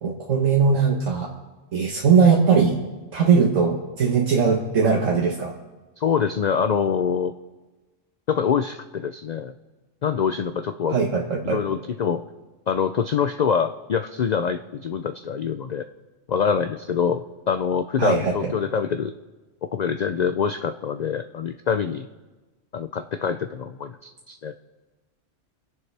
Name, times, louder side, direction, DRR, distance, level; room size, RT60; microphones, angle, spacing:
voice 1, 0.0-1.3 1.7-2.8 3.1-5.5 10.9-11.6 18.0-18.5, right 5 dB, 80° right, -1 dB, 1.6 m, -20 dB
voice 2, 6.0-7.3 8.3-9.5 10.0-11.0 11.4-12.2 12.7-15.9 16.3-19.1 19.7-22.1 22.7-24.5, left 7 dB, 65° left, 8 dB, 0.4 m, -25 dB
27.5 x 10.5 x 3.4 m, 1.2 s
omnidirectional pair, 1.3 m